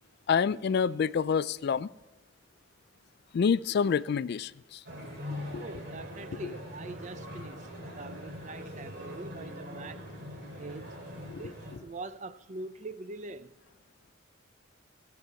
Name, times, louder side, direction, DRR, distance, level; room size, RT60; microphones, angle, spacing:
voice 1, 0.3-1.9 3.3-4.8 5.5-5.6 11.3-11.4, left 6 dB, 55° left, 0.3 m, -27 dB
sound 1, 4.9-11.8, left 1 dB, 55° right, 2.7 m, -42 dB
voice 2, 5.6-7.7 8.0-10.0 10.6-10.9 11.4-11.6 11.8-13.5, right 3 dB, 35° right, 0.5 m, -43 dB
16.5 x 8.3 x 5.7 m
head